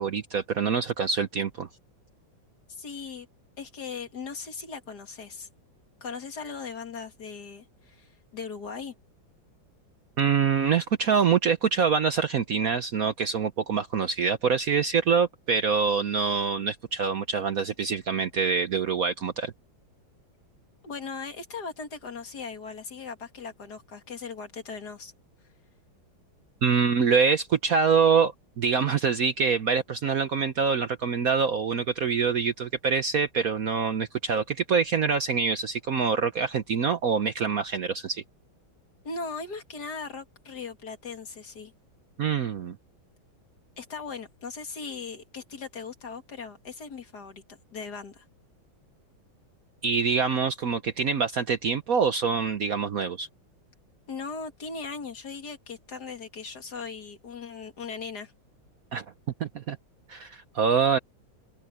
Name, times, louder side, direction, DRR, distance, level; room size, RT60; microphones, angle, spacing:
voice 1, 0.0-1.7 10.2-19.5 26.6-38.2 42.2-42.8 49.8-53.3 58.9-59.0 59.4-59.8 60.1-61.0, right 6 dB, 55° right, 1.1 m, -25 dB
voice 2, 2.8-3.3 3.6-5.5 6.0-8.9 20.8-25.1 39.0-41.7 43.8-47.4 47.7-48.2 54.1-58.3, left 5 dB, 55° left, 2.7 m, -38 dB
omnidirectional pair, 2.2 m